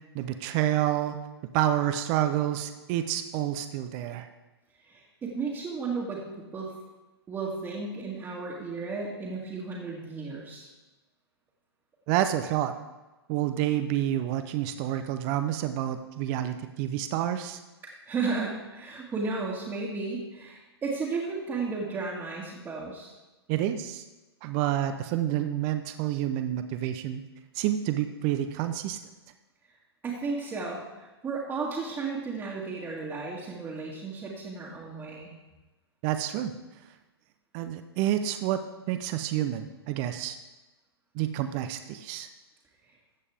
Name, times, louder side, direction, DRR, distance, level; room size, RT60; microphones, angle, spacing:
voice 1, 0.1-1.2 1.5-4.3 12.1-12.7 13.3-17.6 23.5-24.0 24.4-27.2 27.5-29.0 36.0-36.5 37.5-40.4 41.1-42.3, right 12 dB, 30° right, 9 dB, 0.7 m, -28 dB
voice 2, 4.8-6.7 7.3-10.7 17.8-23.1 30.0-35.3, right 4 dB, 15° right, -6 dB, 1.8 m, -34 dB
14.0 x 8.3 x 3.5 m, 1.1 s
figure-of-eight pair, 120°, 14 cm